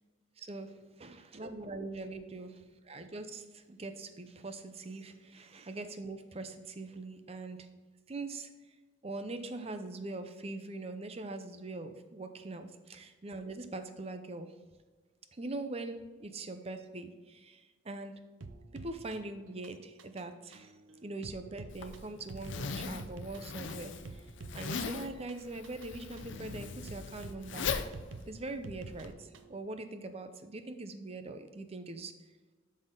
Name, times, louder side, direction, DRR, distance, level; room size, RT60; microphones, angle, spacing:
voice 1, 0.4-7.7 8.1-8.5 9.0-14.5 15.3-18.1 18.7-20.7 21.0-24.3 24.5-27.8 28.3-32.1, right 2 dB, 30° right, 9 dB, 0.6 m, -42 dB
sound 1, 18.4-29.6, right 3 dB, 85° right, 0.6 m, -50 dB
Zipper (clothing), 21.7-29.1, left 5 dB, 70° left, 0.6 m, -39 dB
12.0 x 4.2 x 3.8 m, 1.4 s
head